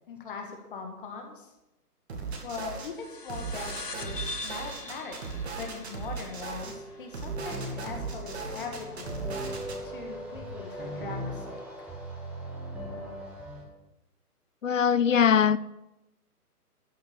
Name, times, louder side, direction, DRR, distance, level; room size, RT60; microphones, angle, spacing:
voice 1, 0.1-1.5 2.4-5.2 5.5-11.9, left 5 dB, 35° left, 3 dB, 1.7 m, -41 dB
sound 1, 2.1-2.9 3.3-6.7 7.1-9.8, right 5 dB, 40° right, 2.3 m, -37 dB
sound 2, 2.9-7.9, left 2 dB, 80° left, 1.7 m, -42 dB
sound 3, 6.6-13.6, equal, 5° right, 1.0 m, -39 dB
voice 2, 14.6-15.6, left 7 dB, 55° left, 18 dB, 0.6 m, -21 dB
13.5 x 6.5 x 8.5 m, 0.94 s
figure-of-eight pair, 145°, 47 cm